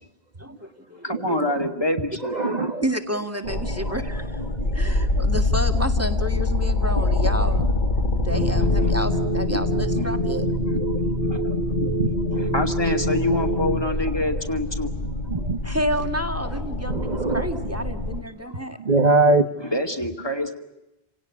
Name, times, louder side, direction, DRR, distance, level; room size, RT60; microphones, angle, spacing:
voice 1, 0.4-1.4 2.8-7.6 8.1-10.5 12.3-12.4 15.6-18.8, equal, 15° right, 6 dB, 2.1 m, -30 dB
voice 2, 1.0-2.6 7.2-7.3 8.0-8.1 8.5-9.0 9.5-9.6 10.0-10.1 10.7-10.8 11.3-11.4 11.8-11.9 12.3-14.9 19.6-20.6, left 1 dB, 25° left, 5 dB, 2.5 m, -27 dB
voice 3, 2.3-2.8 3.8-3.9 4.6-5.0 7.0-7.1 9.8-9.9 10.7-11.0 11.7-12.1 15.3-15.6 16.9-17.7 18.8-19.5, right 3 dB, 45° right, 7 dB, 1.3 m, -23 dB
sound 1, 3.4-18.2, left 2 dB, 45° left, 2.1 m, -26 dB
sound 2, 8.3-13.8, equal, 70° left, 2.2 m, -25 dB
29.5 x 18.0 x 9.6 m, 0.93 s
omnidirectional pair, 1.0 m